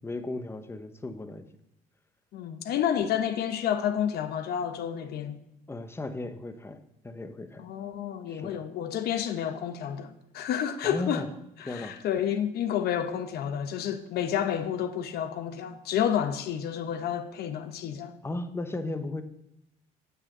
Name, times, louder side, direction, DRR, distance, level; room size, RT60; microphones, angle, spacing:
voice 1, 0.0-1.5 5.7-7.7 8.3-8.6 10.8-11.3 11.7-12.0 18.2-19.2, left 2 dB, 15° left, 0.8 m, -36 dB
voice 2, 2.3-5.4 7.6-11.3 11.6-18.1, left 9 dB, 70° left, 0.9 m, -30 dB
9.3 x 6.3 x 6.5 m
cardioid pair, 110°, 17 cm